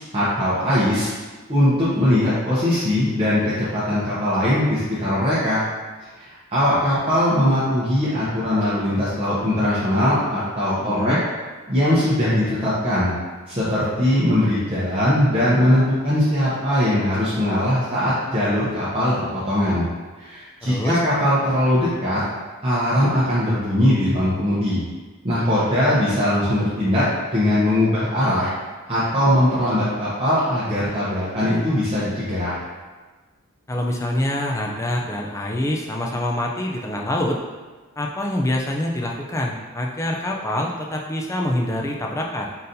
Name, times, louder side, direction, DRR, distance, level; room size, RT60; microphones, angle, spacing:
voice 1, 0.1-1.1 1.5-5.6 6.2-11.2 11.7-13.1 13.5-19.8 20.2-22.2 22.6-24.8 25.2-27.0 27.3-28.5 28.9-32.6, left 1 dB, 25° right, -10 dB, 0.8 m, -20 dB
voice 2, 10.8-11.2 20.6-21.0 33.7-37.4 38.0-42.5, left 1 dB, 15° left, 0 dB, 0.3 m, -25 dB
3.9 x 3.9 x 2.6 m, 1.3 s
head